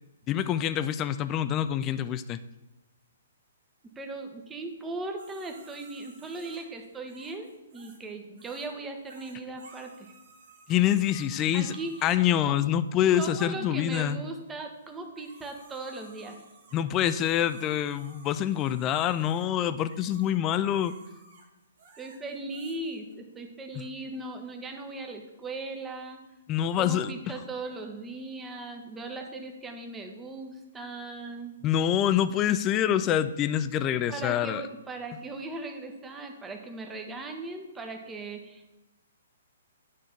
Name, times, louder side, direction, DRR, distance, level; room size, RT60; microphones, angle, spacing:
voice 1, 0.3-2.4 10.7-11.7 12.0-14.2 16.7-21.0 26.5-27.1 31.6-34.6, left 10 dB, 25° left, 13 dB, 0.4 m, -26 dB
voice 2, 4.0-10.1 11.5-12.2 12.4-12.6 13.1-16.4 22.0-26.2 26.8-31.5 34.1-38.8, right 2 dB, 10° right, 4 dB, 1.0 m, -38 dB
sound 1, 5.2-8.1 8.4-8.7 9.0-12.3 13.2-13.3 14.9-23.1, right 3 dB, 65° right, 1.6 m, -55 dB
9.2 x 3.6 x 5.8 m, 1.0 s
hypercardioid pair, 130°, 0 cm